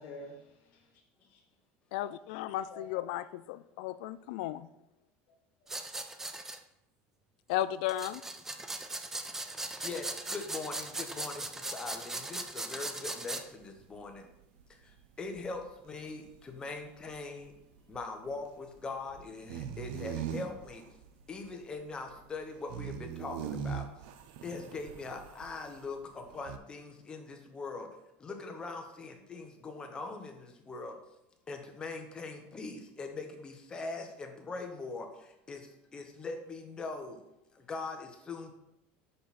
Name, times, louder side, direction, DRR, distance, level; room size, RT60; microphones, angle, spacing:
voice 1, 0.0-1.4 2.7-3.2 5.3-5.4 5.6-5.8, left 1 dB, 55° left, -3 dB, 1.1 m, -49 dB
voice 2, 1.9-4.7 7.5-8.2, left 13 dB, 75° left, 16 dB, 0.3 m, -34 dB
sound 1, 5.7-6.6 7.9-13.4, right 2 dB, 10° right, 0.4 m, -39 dB
voice 3, 9.8-14.3 14.7-17.5 17.9-20.8 21.3-23.9 24.4-27.9 28.2-30.9 31.5-37.2 37.5-38.5, left 3 dB, 15° left, 4 dB, 0.8 m, -41 dB
sound 2, 13.4-25.9 26.2-26.6, right 8 dB, 75° right, 0.5 m, -42 dB
5.8 x 5.2 x 4.1 m, 0.84 s
cardioid pair, 155°, 5 cm